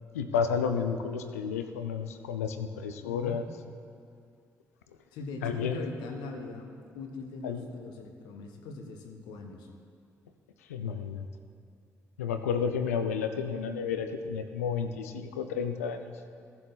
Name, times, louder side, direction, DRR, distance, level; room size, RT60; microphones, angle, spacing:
voice 1, 0.1-3.5 5.4-5.8 7.4-7.6 10.7-11.2 12.2-16.2, left 6 dB, 85° left, 8 dB, 0.5 m, -31 dB
voice 2, 3.0-3.4 5.1-9.7, left 3 dB, 70° left, 4 dB, 1.0 m, -41 dB
15.0 x 7.0 x 4.0 m, 2.3 s
hypercardioid pair, 45°, 8 cm